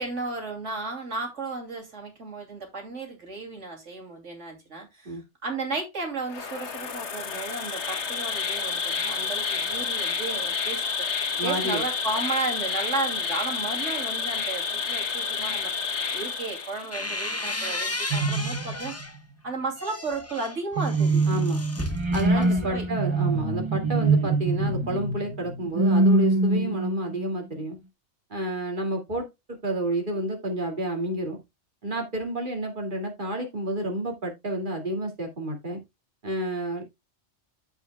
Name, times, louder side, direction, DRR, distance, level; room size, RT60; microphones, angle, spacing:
voice 1, 0.0-18.9 19.4-21.2 22.3-22.8, right 3 dB, 85° right, 3.0 m, -34 dB
Insect, 6.3-17.1, left 5 dB, 70° left, 1.4 m, -29 dB
voice 2, 11.4-11.8 21.3-21.6 22.1-27.8 28.3-31.4 31.8-35.8 36.2-36.8, right 1 dB, 45° right, 2.4 m, -30 dB
sound 1, 16.5-19.2 19.6-23.0, left 2 dB, 15° left, 0.7 m, -34 dB
sound 2, 18.1-19.2 20.8-27.2, right 3 dB, 25° right, 0.9 m, -24 dB
14.5 x 5.6 x 2.2 m
omnidirectional pair, 1.2 m